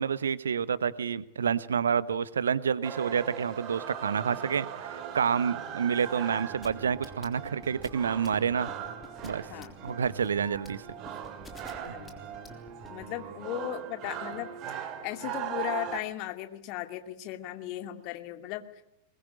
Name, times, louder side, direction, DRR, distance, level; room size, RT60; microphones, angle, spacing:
voice 1, 0.0-8.7 9.2-9.4 9.8-10.8 11.9-12.0, right 7 dB, 70° right, 17 dB, 1.0 m, -28 dB
sound 1, 2.8-16.0, right 9 dB, 35° right, 2.6 m, -39 dB
sound 2, 6.6-13.0, left 4 dB, 20° left, 3.5 m, -48 dB
voice 2, 11.7-12.2 12.9-14.5 15.0-18.8, left 13 dB, 45° left, 7 dB, 2.4 m, -37 dB
22.0 x 21.0 x 9.7 m, 0.80 s
figure-of-eight pair, 90°, 0 cm